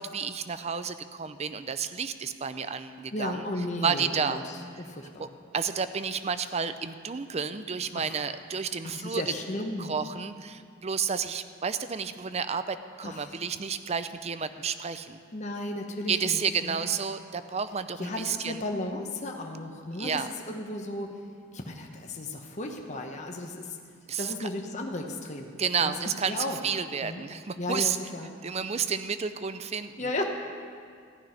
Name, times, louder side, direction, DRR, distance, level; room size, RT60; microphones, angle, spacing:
voice 1, 0.0-3.5 3.8-4.4 5.2-5.3 5.5-9.2 9.8-15.2 16.1-18.6 20.0-20.3 24.1-24.5 25.6-28.0 28.4-30.1, right 6 dB, 30° right, 12 dB, 0.5 m, -31 dB
voice 2, 3.1-5.3 7.9-8.1 8.8-10.0 13.0-13.4 15.3-16.9 18.0-21.1 21.5-23.8 24.2-26.0 26.3-26.6 27.0-27.2 27.6-28.3 30.0-30.2, left 1 dB, 35° left, 2 dB, 0.9 m, -35 dB
14.5 x 6.2 x 9.9 m, 2.2 s
head